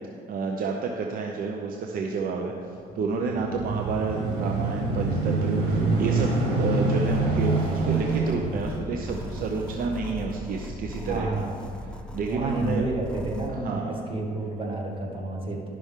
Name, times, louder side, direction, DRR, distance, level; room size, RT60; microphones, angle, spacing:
voice 1, 0.3-2.5 2.9-6.3 6.6-11.3 11.9-12.9 13.5-14.0, right 4 dB, 60° right, 1 dB, 0.7 m, -30 dB
sound 1, 3.0-11.8 12.4-12.5, right 2 dB, 85° right, 2.0 m, -27 dB
sound 2, 7.1-13.5, left 1 dB, 5° left, 0.6 m, -39 dB
voice 2, 11.1-11.6 12.3-15.7, right 2 dB, 30° right, -1 dB, 1.7 m, -30 dB
11.5 x 6.0 x 3.6 m, 2.3 s
cardioid pair, 110°, 17 cm